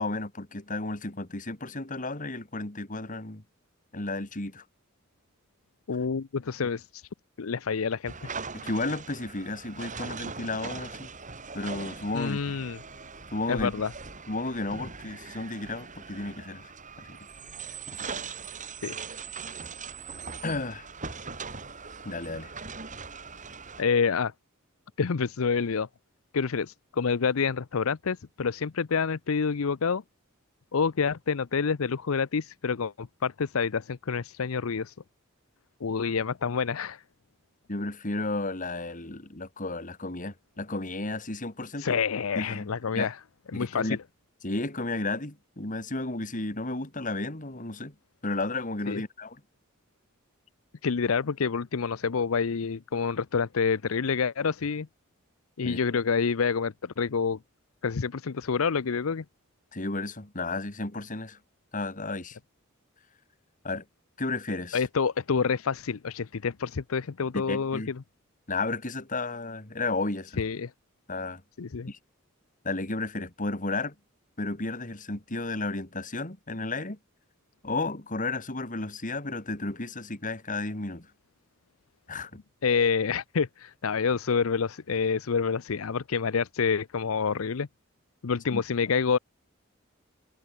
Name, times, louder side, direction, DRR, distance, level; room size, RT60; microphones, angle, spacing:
voice 1, 0.0-3.4 3.9-4.6 8.5-11.1 11.5-12.6 13.3-13.8 14.3-16.7 17.0-17.2 17.9-18.1 20.4-20.9 22.0-22.5 37.7-42.0 42.4-43.1 43.5-44.0 44.4-47.9 48.2-49.4 55.6-55.8 59.7-61.4 61.7-62.4 63.6-63.8 64.2-64.8 67.3-67.9 68.5-70.4 71.1-71.4 71.9-72.0 72.6-73.9 74.4-77.0 77.6-81.1 82.1-82.4 88.5-88.6, left 2 dB, 40° left, 2.8 m, -33 dB
voice 2, 5.9-7.0 7.4-8.3 12.1-12.8 13.5-13.9 18.8-19.0 23.8-24.3 25.0-25.9 26.3-30.0 30.7-34.9 35.8-37.0 41.8-43.1 43.5-44.0 48.9-49.0 50.8-54.9 55.6-57.4 57.8-59.2 64.7-67.8 70.4-70.7 71.6-71.9 82.6-87.7 88.2-89.2, left 5 dB, 80° left, 0.6 m, -28 dB
sound 1, 8.1-23.8, right 5 dB, 35° right, 5.2 m, -40 dB
head